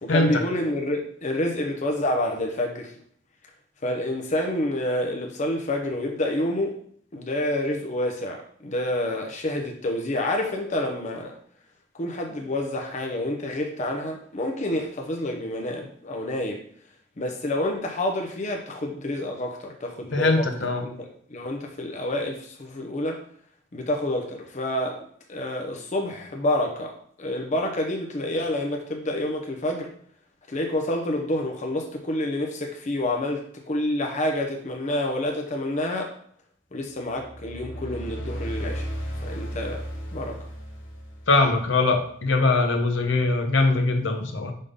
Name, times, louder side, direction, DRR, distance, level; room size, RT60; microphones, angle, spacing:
voice 1, 0.0-2.9 3.8-6.8 7.1-11.3 12.0-16.6 17.2-20.5 20.8-23.2 23.7-25.0 25.3-26.9 27.2-29.9 30.5-36.1 36.7-38.9 39.2-39.8 40.1-40.4, left 1 dB, 40° left, 1 dB, 0.7 m, -28 dB
voice 2, 20.1-20.8 41.3-44.5, left 3 dB, 65° left, 5 dB, 0.9 m, -22 dB
sound 1, 37.1-41.8, equal, 85° left, 1.6 m, -35 dB
5.2 x 3.6 x 5.3 m, 0.62 s
head